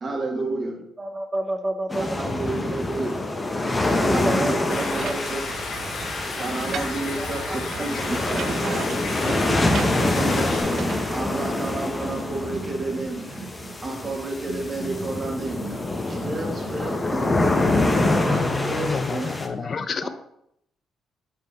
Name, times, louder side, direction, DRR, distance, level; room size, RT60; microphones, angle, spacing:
voice 1, 0.0-0.7 2.0-3.1 3.9-5.4 6.2-8.4 9.3-10.6 11.1-17.7 18.2-19.4 20.0-20.1, right 2 dB, 40° right, 1 dB, 1.7 m, -31 dB
voice 2, 0.8-2.4 4.0-5.4 7.2-7.6 8.0-8.2 10.0-10.7, right 1 dB, 20° right, 7 dB, 0.8 m, -32 dB
sound 1, 1.9-19.5, left 2 dB, 20° left, 0.9 m, -26 dB
Stream, 4.7-10.6, left 3 dB, 75° left, 1.6 m, -33 dB
sound 2, 4.9-11.1, right 8 dB, 65° right, 0.3 m, -37 dB
voice 3, 17.6-20.1, left 5 dB, 45° left, 11 dB, 0.5 m, -29 dB
6.5 x 5.3 x 3.3 m, 0.75 s
cardioid pair, 90°, 0 cm